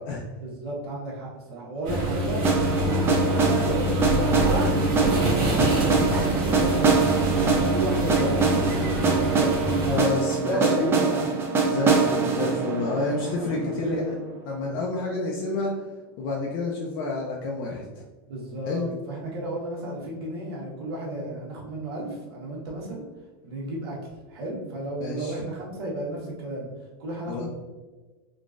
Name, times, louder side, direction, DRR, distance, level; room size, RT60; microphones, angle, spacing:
voice 1, 0.4-4.7 5.1-7.1 7.7-10.0 10.4-11.3 13.2-14.2 18.3-23.0 23.4-24.0 24.3-26.7 27.0-27.5, right 1 dB, 90° right, -3 dB, 1.1 m, -33 dB
sound 1, 1.8-10.0, right 1 dB, 55° right, 1.3 m, -25 dB
sound 2, 2.4-14.4, right 4 dB, 20° right, 0.4 m, -24 dB
voice 2, 9.9-10.7 11.6-13.9 14.5-15.7 16.2-18.0 18.7-18.9 25.0-25.4 27.3-27.5, left 3 dB, 55° left, -2 dB, 0.5 m, -29 dB
3.7 x 2.4 x 2.4 m, 1.3 s
supercardioid pair, 145°, 13 cm